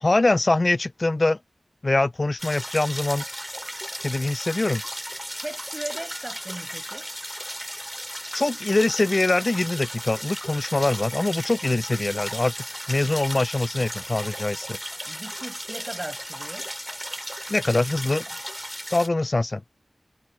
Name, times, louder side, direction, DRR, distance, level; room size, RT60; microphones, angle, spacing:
voice 1, 0.0-1.4 1.8-3.2 4.0-4.8 8.3-12.5 12.9-14.8 17.5-18.3 18.9-19.6, left 2 dB, 50° left, 0.5 m, -23 dB
sound 1, 2.4-19.1, equal, 5° right, 2.9 m, -35 dB
voice 2, 5.4-7.1 15.0-16.7, right 1 dB, 30° right, 7.5 m, -37 dB
cardioid pair, 40°, 0 cm